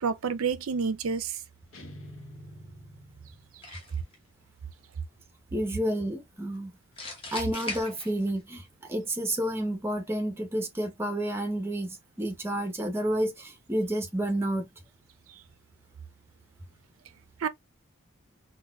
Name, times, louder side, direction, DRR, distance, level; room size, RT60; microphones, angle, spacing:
voice 1, 0.0-1.4 17.4-17.5, right 5 dB, 80° right, 0.5 m, -28 dB
sound 1, 1.7-3.8, equal, 70° left, 0.7 m, -47 dB
sound 2, 3.6-4.2 7.0-8.5, left 2 dB, 25° left, 1.0 m, -38 dB
voice 2, 5.5-6.7 7.1-14.7, right 1 dB, 10° right, 0.6 m, -30 dB
4.0 x 2.2 x 2.2 m
head